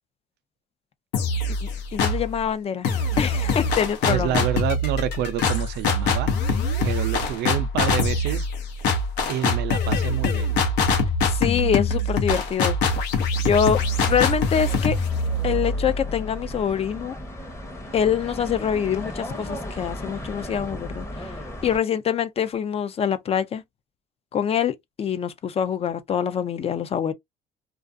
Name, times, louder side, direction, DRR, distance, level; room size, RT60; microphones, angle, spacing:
sound 1, 1.1-2.4 2.8-16.5, left 3 dB, 85° left, 0.8 m, -24 dB
voice 1, 1.6-2.9 3.2-4.4 11.3-12.8 13.4-13.8 14.1-15.0 15.4-17.2 17.9-21.3 21.6-23.6 24.3-27.1, left 8 dB, 35° left, 0.4 m, -25 dB
voice 2, 4.1-6.3 6.8-8.5 9.3-10.5, right 11 dB, 80° right, 0.4 m, -28 dB
sound 2, 13.6-21.8, left 1 dB, 15° left, 0.8 m, -36 dB
2.4 x 2.3 x 2.4 m
cardioid pair, 110°, 17 cm